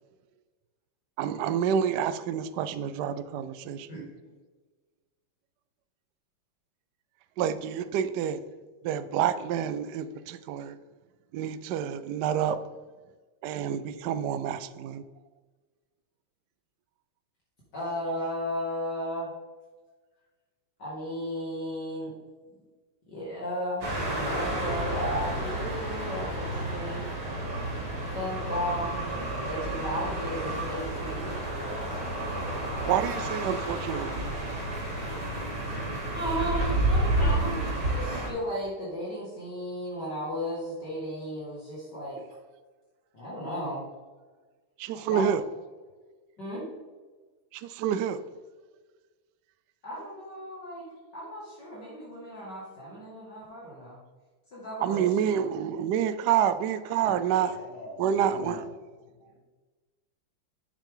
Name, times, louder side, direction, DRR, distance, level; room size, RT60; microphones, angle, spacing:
voice 1, 1.2-4.1 7.4-8.4 8.8-10.8 11.3-12.6 13.4-15.0 32.9-34.3 44.8-45.4 47.5-48.2 54.8-57.5 58.0-58.6, right 9 dB, 85° right, 0.9 m, -28 dB
voice 2, 3.9-4.3 17.7-19.3 20.8-22.1 23.1-27.0 28.1-29.1 29.4-32.0 33.1-33.3 36.1-42.2 43.1-43.8 45.1-45.2 46.4-46.6 49.8-50.9 51.1-54.0 54.5-55.4, equal, 50° left, 2.8 m, -35 dB
sound 1, 23.8-38.3, right 1 dB, 65° right, 3.0 m, -30 dB
voice 3, 57.3-58.6 59.3-59.4, left 1 dB, 70° left, 3.0 m, -44 dB
8.8 x 7.2 x 3.8 m
omnidirectional pair, 2.4 m